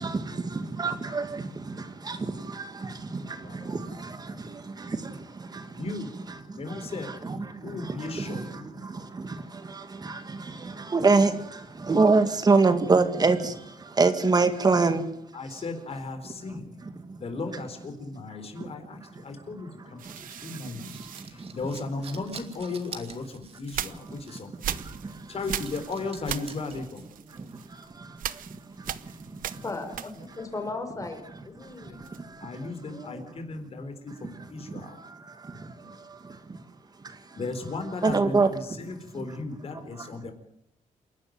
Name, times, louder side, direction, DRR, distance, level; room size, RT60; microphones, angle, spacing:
voice 1, 0.0-5.9 6.3-15.6 16.5-17.2 17.5-17.6 18.6-18.7 19.0-19.4 20.0-21.6 23.8-25.4 27.3-29.6 30.3-30.4 31.6-32.9 34.1-36.7 36.9-37.4 38.0-38.5 38.8-39.3 39.7-40.3, right 3 dB, 30° right, 2.1 m, -28 dB
voice 2, 3.2-3.9 5.8-6.1 6.5-8.7 15.3-16.7 17.2-20.1 20.4-21.0 21.2-24.5 25.3-27.0 31.9-32.0 32.4-35.0 37.4-40.3, left 3 dB, 45° left, 4.3 m, -36 dB
sound 1, 20.0-22.2 22.9-30.5 30.8-32.4, right 10 dB, 90° right, 0.9 m, -39 dB
sound 2, 20.7-27.7, right 5 dB, 45° right, 2.6 m, -47 dB
voice 3, 29.5-32.0 32.9-33.3 35.8-36.0, left 3 dB, 25° left, 4.2 m, -37 dB
28.5 x 12.0 x 9.4 m
wide cardioid pair, 135°, 14 cm